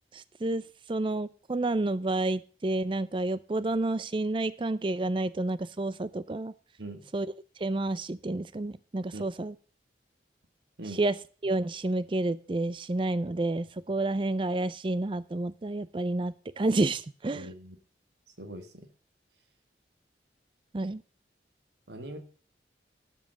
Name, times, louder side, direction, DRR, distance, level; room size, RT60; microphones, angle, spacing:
voice 1, 0.1-0.6 0.9-6.5 7.1-7.3 7.6-9.5 11.0-11.1 11.4-17.5 20.7-21.0, right 2 dB, 30° right, 17 dB, 0.4 m, -30 dB
voice 2, 17.3-17.7 18.4-18.9 21.9-22.2, right 1 dB, 75° right, 7 dB, 1.6 m, -41 dB
12.5 x 5.5 x 7.5 m, 0.41 s
head